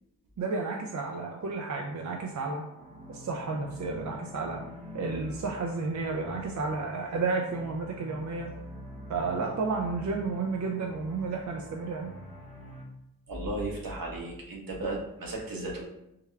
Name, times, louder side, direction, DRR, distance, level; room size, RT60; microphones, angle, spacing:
voice 1, 0.4-2.6 3.1-4.6 4.9-8.5 9.1-12.1, right 4 dB, 50° right, 1 dB, 0.5 m, -32 dB
sound 1, 1.2-12.8, equal, 20° right, 0.8 m, -46 dB
voice 2, 13.3-15.9, right 2 dB, 70° right, -1 dB, 0.9 m, -35 dB
3.5 x 2.1 x 3.3 m, 0.85 s
cardioid pair, 50°, 37 cm